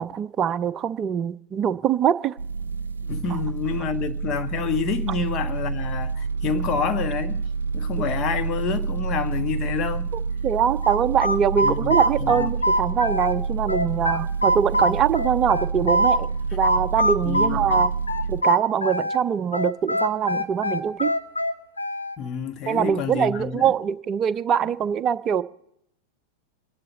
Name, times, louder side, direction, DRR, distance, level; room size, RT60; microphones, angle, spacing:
voice 1, 0.0-2.4 3.3-3.4 8.0-8.1 10.4-17.9 18.3-21.1 22.7-25.4, right 8 dB, 30° right, 0.6 m, -23 dB
sound 1, 2.4-18.4, right 5 dB, 70° right, 0.7 m, -28 dB
voice 2, 3.0-7.4 7.7-10.1 11.6-12.5 17.2-17.8 22.2-23.7, left 6 dB, 30° left, 1.3 m, -28 dB
sound 2, 10.8-13.4 13.7-16.2 16.6-19.2 19.5-22.2, equal, 80° left, 0.9 m, -23 dB
26.0 x 11.0 x 4.0 m
figure-of-eight pair, 90°, 0 cm